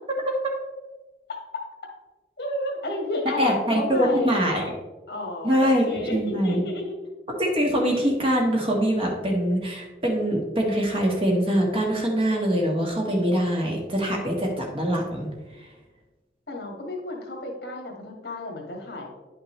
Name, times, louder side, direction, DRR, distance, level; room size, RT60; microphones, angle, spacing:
voice 1, 2.4-4.7 5.1-6.8 16.5-19.1, left 1 dB, 60° left, 0 dB, 1.8 m, -31 dB
voice 2, 3.4-4.6 5.4-6.6 7.3-15.3, equal, 30° right, -1 dB, 1.4 m, -23 dB
10.0 x 5.8 x 3.2 m, 1.2 s
head